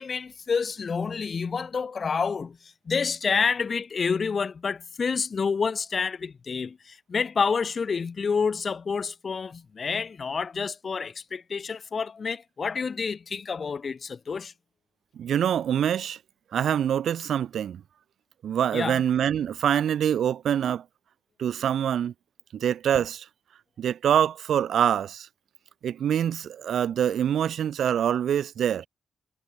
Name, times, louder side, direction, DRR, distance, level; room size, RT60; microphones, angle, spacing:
voice 1, 0.0-2.6 2.9-14.5 18.7-19.0, left 5 dB, 40° left, 0.8 m, -28 dB
voice 2, 15.1-16.2 16.5-17.8 18.4-20.8 21.4-22.1 22.5-23.2 23.8-25.3 25.8-28.9, right 9 dB, 75° right, 1.5 m, -25 dB
wide cardioid pair, 145°, 0 cm